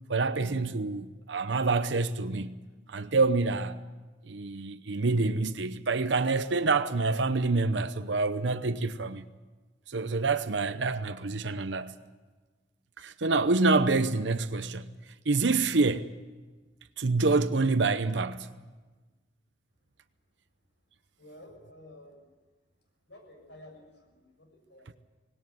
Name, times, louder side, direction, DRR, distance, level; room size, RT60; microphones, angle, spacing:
voice 1, 0.1-2.6 2.9-3.8 4.3-9.2 9.9-11.9 13.0-14.9 15.3-16.2 17.0-18.5, right 3 dB, 80° right, 0.8 m, -27 dB
voice 2, 21.1-22.3 23.1-25.0, left 1 dB, 75° left, 6.8 m, -52 dB
19.5 x 18.0 x 9.6 m
head